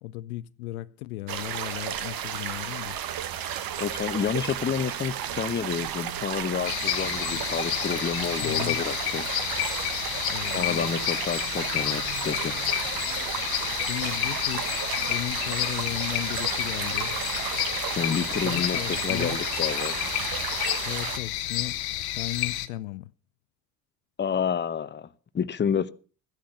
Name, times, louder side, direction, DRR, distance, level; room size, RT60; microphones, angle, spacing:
voice 1, 0.0-3.0 7.3-7.4 8.4-8.8 10.3-10.9 13.8-14.8 15.1-17.2 18.4-19.4 20.8-21.8 22.1-23.1, left 16 dB, 75° left, 0.6 m, -36 dB
sound 1, 1.3-21.2, right 10 dB, 50° right, 1.4 m, -33 dB
sound 2, 2.9-18.1 18.7-20.5, right 8 dB, 90° right, 0.9 m, -49 dB
voice 2, 3.8-9.3 10.5-12.6 18.0-20.1 24.2-25.1 25.3-25.9, left 7 dB, 25° left, 0.8 m, -29 dB
sound 3, 6.6-22.7, left 15 dB, 55° left, 1.0 m, -30 dB
15.0 x 10.5 x 5.8 m
figure-of-eight pair, 55°, 44 cm